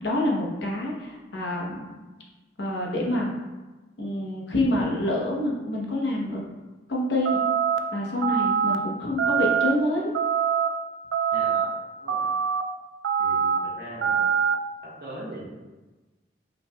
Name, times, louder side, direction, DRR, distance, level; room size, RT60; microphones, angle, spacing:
voice 1, 0.0-1.9 2.6-3.3 4.0-6.4 6.9-7.4 7.9-10.1, left 1 dB, 70° left, -2 dB, 0.9 m, -27 dB
sound 1, 7.3-7.8 8.2-8.8 9.2-9.7 10.1-10.7 11.1-11.7 12.1-12.6 13.0-13.6 14.0-14.6, right 7 dB, 90° right, 0.3 m, -23 dB
voice 2, 11.3-11.7 12.0-12.3 13.2-14.5 15.0-15.5, right 1 dB, 55° right, -6 dB, 1.2 m, -40 dB
5.7 x 3.1 x 2.3 m, 1.2 s
head